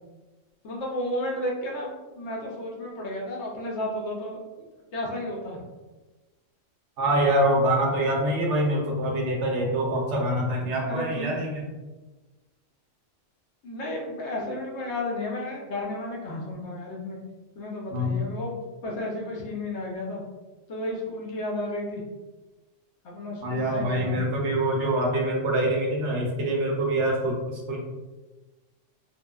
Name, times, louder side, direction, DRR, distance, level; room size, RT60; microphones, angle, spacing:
voice 1, 0.6-4.4 4.9-5.6 10.9-11.4 13.6-17.2 17.6-20.2 20.7-22.0 23.0-24.2, left 1 dB, 65° left, -2 dB, 0.8 m, -32 dB
voice 2, 7.0-11.7 17.9-18.1 23.4-27.8, right 1 dB, 70° right, -1 dB, 0.9 m, -25 dB
2.9 x 2.3 x 2.2 m, 1.2 s
omnidirectional pair, 1.3 m